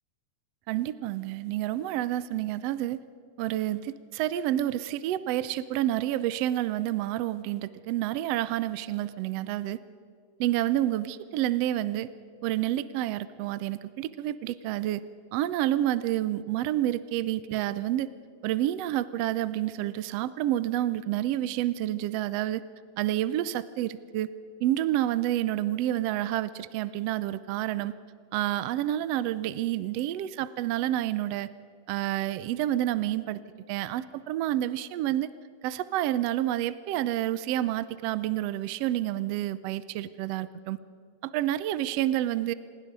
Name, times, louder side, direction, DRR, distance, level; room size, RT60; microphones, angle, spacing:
voice 1, 0.7-3.0 3.4-9.8 10.4-12.1 12.4-15.0 15.3-18.1 18.4-22.6 23.0-24.3 24.6-27.9 28.3-31.5 31.9-33.4 33.7-35.3 35.6-40.8 41.2-42.5, right 13 dB, 75° right, 15 dB, 1.6 m, -29 dB
27.5 x 20.5 x 5.4 m, 2.1 s
omnidirectional pair, 3.4 m